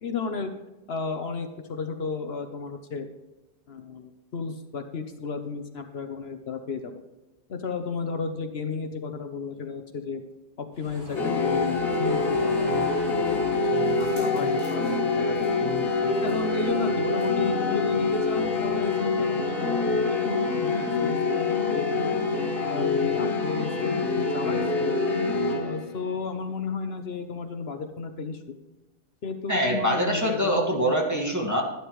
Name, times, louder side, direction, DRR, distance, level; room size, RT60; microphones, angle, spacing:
voice 1, 0.0-0.5 0.9-3.1 3.7-6.9 7.5-10.2 10.6-12.7 13.0-15.5 16.2-22.1 22.7-24.0 24.3-25.0 25.5-28.6 29.2-30.4 30.8-30.9, left 4 dB, 65° left, 7 dB, 1.1 m, -33 dB
sound 1, 10.7-18.9, equal, 90° right, 3.9 m, -44 dB
sound 2, 11.1-26.0, left 3 dB, 80° left, 2.0 m, -25 dB
voice 2, 29.5-31.6, equal, 15° right, -1 dB, 1.9 m, -24 dB
12.0 x 11.5 x 3.1 m, 1.1 s
omnidirectional pair, 1.2 m